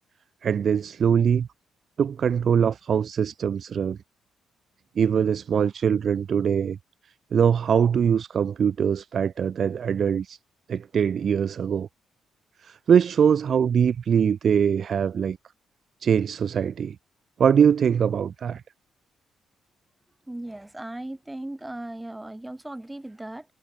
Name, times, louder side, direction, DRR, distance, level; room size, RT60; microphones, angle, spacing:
voice 1, 0.4-1.5 2.0-4.0 5.0-6.8 7.3-10.4 10.7-11.9 12.6-15.4 16.0-17.0 17.4-18.6, right 7 dB, 45° right, 0.4 m, -22 dB
voice 2, 20.3-23.5, right 1 dB, 10° right, 2.2 m, -37 dB
cardioid pair, 145°, 0 cm